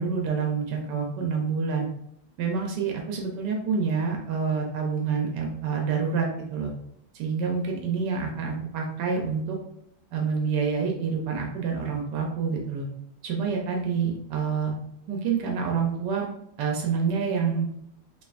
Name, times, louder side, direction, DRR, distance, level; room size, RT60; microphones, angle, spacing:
voice 1, 0.0-1.9 2.4-6.7 7.1-9.6 10.1-12.9 13.2-14.7 15.1-16.3 16.6-17.7, right 5 dB, 85° right, 0 dB, 1.3 m, -27 dB
5.5 x 2.4 x 2.5 m, 0.76 s
omnidirectional pair, 1.8 m